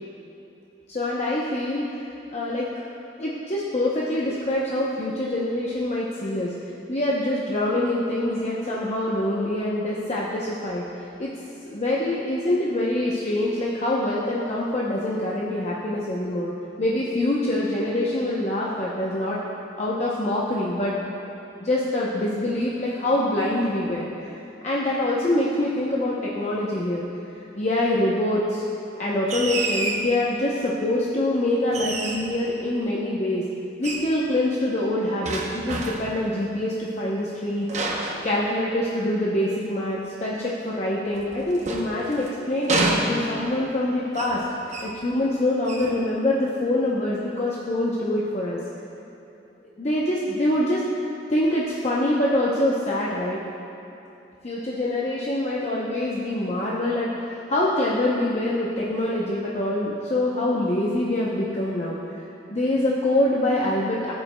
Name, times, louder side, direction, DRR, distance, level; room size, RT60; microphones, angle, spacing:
voice 1, 0.9-2.1 2.3-2.7 3.2-6.5 6.9-10.8 11.2-11.3 11.7-16.5 16.8-19.4 19.8-20.9 21.6-24.1 24.6-27.0 27.6-28.7 29.0-33.4 33.8-37.7 38.2-44.4 44.8-48.6 49.8-50.8 51.3-53.4 54.4-57.1 57.5-62.2 62.5-64.1, left 1 dB, 40° left, -5 dB, 0.7 m, -25 dB
sound 1, 29.3-30.1 31.7-32.4 33.8-34.1 35.2-36.2 37.7-39.0 41.1-42.3 42.7-43.6 44.1-44.4 44.7-45.0 45.6-46.0, right 2 dB, 40° right, 0.8 m, -28 dB
14.5 x 7.8 x 2.2 m, 2.8 s
head